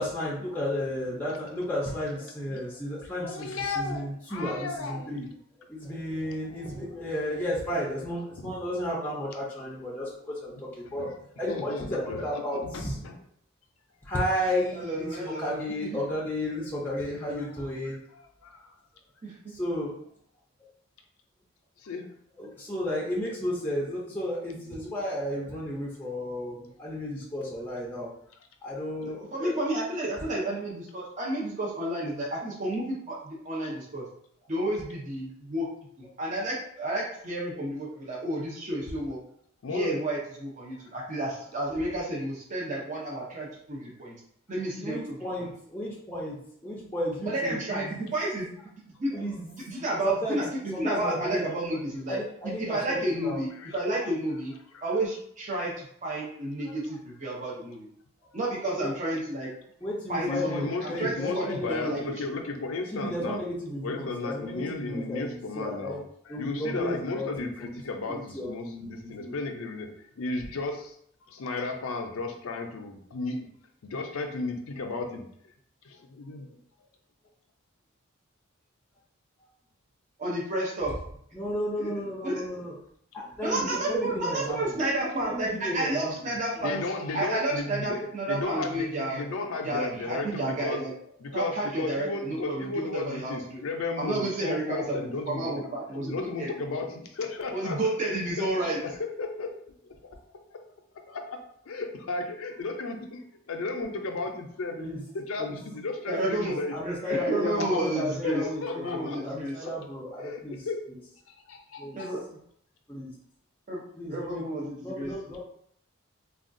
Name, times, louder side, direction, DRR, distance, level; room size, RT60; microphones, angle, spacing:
voice 1, 0.0-5.3 5.7-11.1 11.4-13.0 14.0-18.0 19.5-19.9 22.4-28.1 28.6-29.5 44.8-48.0 49.1-49.5 50.0-50.4 50.7-51.5 52.1-53.0 53.2-53.4 56.6-56.7 58.2-58.3 58.8-58.9 59.8-62.1 62.9-66.0 66.3-67.5 68.3-69.4 81.3-82.7 83.1-84.6 85.2-86.1 104.8-105.0 105.4-105.6 106.3-111.0 111.8-112.0 112.9-113.1 114.0-115.4, left 1 dB, 10° left, -5 dB, 0.5 m, -33 dB
voice 2, 3.2-5.1 6.5-6.7 11.0-11.2 11.5-13.2 17.9-18.7 21.8-22.1 28.8-28.9 39.6-40.0 53.6-53.8 54.7-54.8 60.3-63.4 63.8-66.0 66.3-71.0 71.3-73.5 73.8-75.2 75.8-76.5 86.6-90.8 91.2-95.7 96.1-100.0 100.5-100.6 101.1-101.4 101.7-104.8 105.1-106.7 107.3-108.3 108.6-109.2 109.6-109.7 110.2-110.8 111.3-112.1, left 3 dB, 75° left, 4 dB, 0.5 m, -34 dB
voice 3, 14.7-16.0 19.2-19.5 29.2-34.1 34.5-35.7 36.0-39.2 39.7-44.2 44.5-45.5 47.2-52.2 52.4-54.5 54.8-57.9 58.3-59.5 60.1-62.2 80.2-80.9 81.8-81.9 82.2-82.4 83.4-86.8 87.1-89.2 89.6-90.9 91.3-93.6 94.0-96.6 97.5-98.8 106.1-106.6 106.8-109.6 111.9-112.2 113.7-113.8 114.1-115.3, right 1 dB, 35° right, -4 dB, 0.6 m, -31 dB
3.5 x 2.3 x 2.5 m, 0.66 s
head